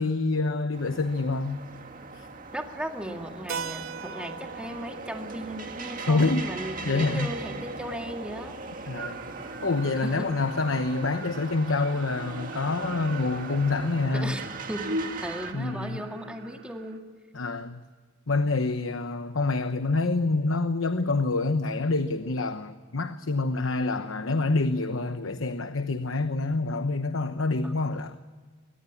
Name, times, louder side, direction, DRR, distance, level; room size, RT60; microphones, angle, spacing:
voice 1, 0.0-1.7 2.1-2.3 6.1-6.5 6.8-7.3 8.9-9.3 9.6-14.3 15.5-16.0 17.3-17.8 18.3-28.2, left 3 dB, 80° left, 1.0 m, -27 dB
sound 1, 0.7-15.5, right 3 dB, 45° right, 2.0 m, -40 dB
voice 2, 2.5-8.5 10.0-10.3 14.1-17.1 27.6-28.1, right 1 dB, 5° right, 2.1 m, -37 dB
Keyboard (musical), 3.5-8.0, right 6 dB, 80° right, 0.9 m, -41 dB
sound 2, 8.9-17.0, right 1 dB, 65° right, 3.1 m, -40 dB
23.5 x 19.5 x 7.2 m
head